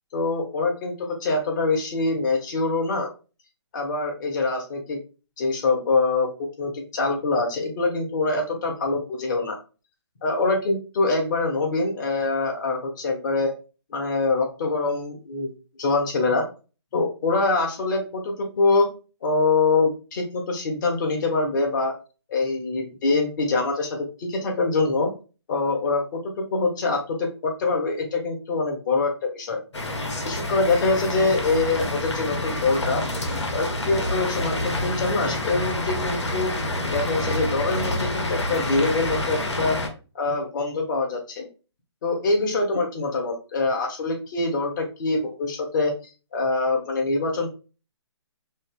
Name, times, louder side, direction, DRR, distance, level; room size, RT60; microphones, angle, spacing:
voice 1, 0.1-3.1 3.7-5.0 5.4-6.3 6.6-9.6 10.2-13.5 13.9-15.5 15.8-16.5 16.9-18.9 19.2-21.9 22.3-25.1 25.5-26.2 26.5-29.6 30.2-33.0 33.5-36.5 36.9-39.8 40.1-41.5 42.0-45.9 46.3-47.5, left 3 dB, 40° left, 1 dB, 1.2 m, -24 dB
sound 1, 29.7-39.9, left 1 dB, 80° left, 1.3 m, -28 dB
5.2 x 2.0 x 3.7 m, 0.33 s
hypercardioid pair, 155°, 15 cm